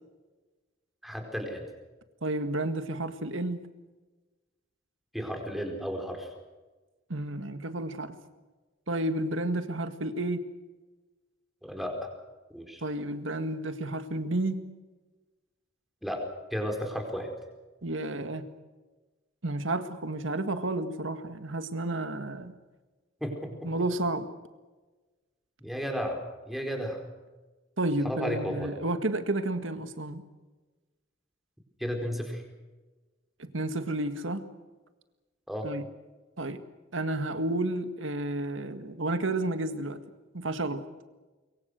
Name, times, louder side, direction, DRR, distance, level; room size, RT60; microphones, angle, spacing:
voice 1, 1.0-1.6 5.1-6.3 11.6-12.0 12.5-12.8 16.0-16.2 16.5-17.3 23.2-23.7 25.6-26.2 26.5-27.0 28.0-28.7 31.8-32.4 35.5-35.7, equal, ahead, 3 dB, 4.4 m, -33 dB
voice 2, 2.2-3.6 7.1-8.1 8.9-10.4 12.8-14.6 17.8-18.5 19.4-22.5 23.6-24.3 27.8-30.2 33.4-34.4 35.6-35.8 36.4-36.6 36.9-40.0 40.3-40.8, right 2 dB, 75° right, 9 dB, 1.8 m, -31 dB
24.5 x 23.0 x 6.5 m, 1.2 s
head